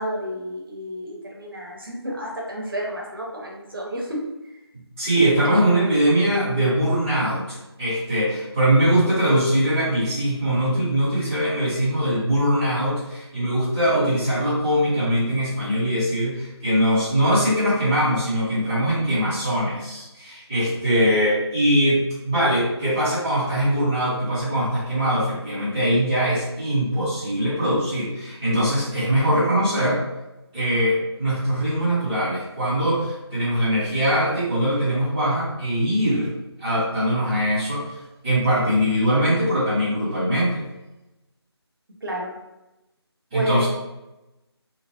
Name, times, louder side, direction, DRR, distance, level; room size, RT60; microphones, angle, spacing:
voice 1, 0.0-4.6 5.4-5.6 42.0-42.3 43.3-43.7, right 1 dB, 55° right, -2 dB, 0.8 m, -30 dB
voice 2, 5.0-30.0 30.5-36.3 36.6-38.0 38.2-40.6 43.3-43.7, equal, 5° right, -17 dB, 0.5 m, -22 dB
3.0 x 2.0 x 2.8 m, 0.97 s
figure-of-eight pair, 160°, 14 cm